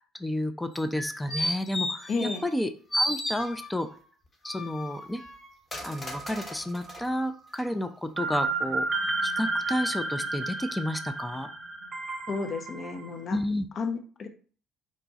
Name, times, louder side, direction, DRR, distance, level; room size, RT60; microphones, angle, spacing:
voice 1, 0.0-3.9 4.4-5.2 5.8-11.5 13.3-13.7, left 1 dB, 10° left, 8 dB, 0.5 m, -31 dB
sound 1, 0.7-2.6 2.9-3.9 4.4-7.1 7.5-7.6, equal, 30° left, 1.1 m, -33 dB
voice 2, 2.1-2.4 12.3-13.4 13.8-14.3, left 4 dB, 45° left, 6 dB, 0.8 m, -32 dB
sound 2, 5.7-6.6 6.9-7.0 8.2-13.1, right 2 dB, 40° right, 1.0 m, -31 dB
4.9 x 2.2 x 4.0 m, 0.41 s
hypercardioid pair, 60°, 0 cm